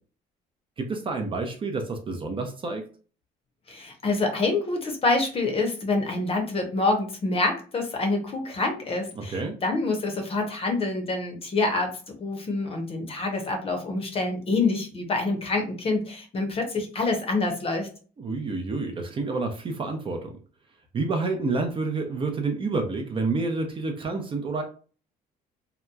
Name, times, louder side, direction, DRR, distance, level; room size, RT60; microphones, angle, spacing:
voice 1, 0.8-2.8 9.2-9.6 18.2-20.4 20.9-24.6, right 3 dB, 30° right, 3 dB, 0.5 m, -29 dB
voice 2, 3.7-17.9, left 3 dB, 35° left, 4 dB, 0.7 m, -26 dB
2.8 x 2.2 x 2.2 m, 0.39 s
cardioid pair, 110°, 17 cm